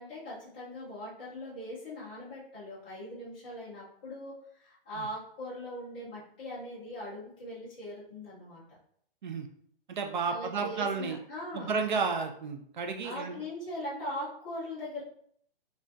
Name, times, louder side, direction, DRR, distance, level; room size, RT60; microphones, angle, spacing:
voice 1, 0.0-8.8 10.3-11.8 13.0-15.0, left 1 dB, 10° left, -11 dB, 0.4 m, -40 dB
voice 2, 9.9-11.2 11.5-13.4, right 5 dB, 55° right, 5 dB, 0.5 m, -32 dB
3.8 x 2.4 x 2.2 m, 0.64 s
hypercardioid pair, 170°, 29 cm